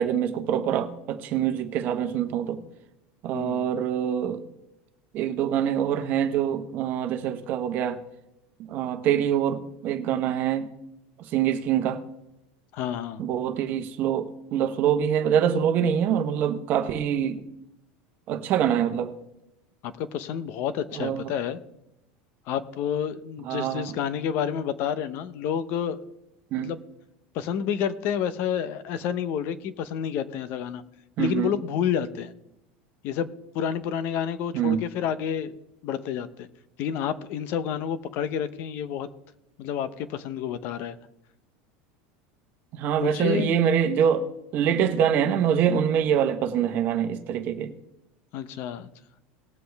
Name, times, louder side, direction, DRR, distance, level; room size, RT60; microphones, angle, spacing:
voice 1, 0.0-2.6 3.2-4.4 5.1-8.0 8.6-10.7 11.3-12.0 13.2-17.4 18.3-19.1 21.0-21.3 23.4-23.9 26.5-26.7 31.2-31.5 34.5-34.8 42.7-44.3 44.5-47.7, right 9 dB, 40° right, 1.1 m, -25 dB
voice 2, 3.3-3.7 12.7-13.2 19.8-21.6 22.5-26.0 26.5-26.8 27.3-30.8 31.2-32.3 33.0-35.5 35.8-36.5 36.8-39.1 39.6-41.0 43.0-43.6 48.3-48.9, left 8 dB, 45° left, 0.8 m, -29 dB
19.5 x 7.6 x 3.5 m
supercardioid pair, 165°, 5 cm